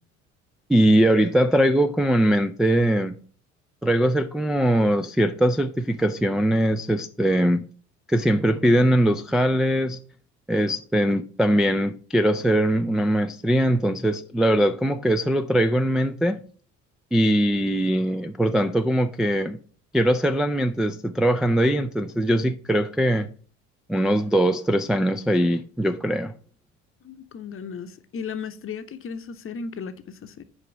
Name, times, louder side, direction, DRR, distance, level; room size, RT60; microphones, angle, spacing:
voice 1, 0.7-3.1 3.8-7.6 8.1-10.0 10.5-16.4 17.1-19.6 19.9-23.3 23.9-26.3, right 1 dB, ahead, 0.3 m, -21 dB
voice 2, 27.0-30.4, left 6 dB, 35° left, 0.8 m, -35 dB
5.3 x 4.9 x 5.9 m
hypercardioid pair, 60°, 37 cm